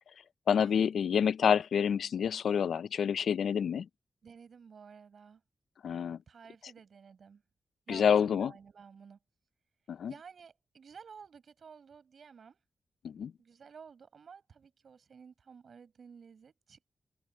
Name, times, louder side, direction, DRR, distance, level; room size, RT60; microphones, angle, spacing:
voice 1, 0.5-3.9 5.8-6.2 7.9-8.5 9.9-10.1 13.0-13.3, left 7 dB, 85° left, 0.5 m, -28 dB
voice 2, 4.2-5.4 6.3-7.4 7.9-9.2 10.1-12.6 13.4-16.9, right 6 dB, 70° right, 5.4 m, -53 dB
cardioid pair, 75°, 0 cm